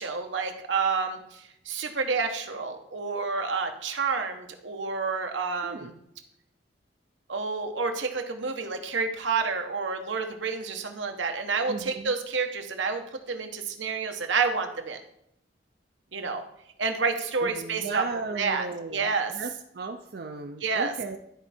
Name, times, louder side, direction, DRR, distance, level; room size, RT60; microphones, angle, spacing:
voice 1, 0.0-5.9 7.3-15.0 16.1-16.4 16.8-18.0 18.3-19.3 20.6-20.9, right 4 dB, 85° right, 5 dB, 1.1 m, -29 dB
voice 2, 5.6-6.0 11.7-12.1 17.4-21.2, right 3 dB, 55° right, 4 dB, 0.5 m, -36 dB
12.5 x 4.5 x 4.3 m, 0.77 s
head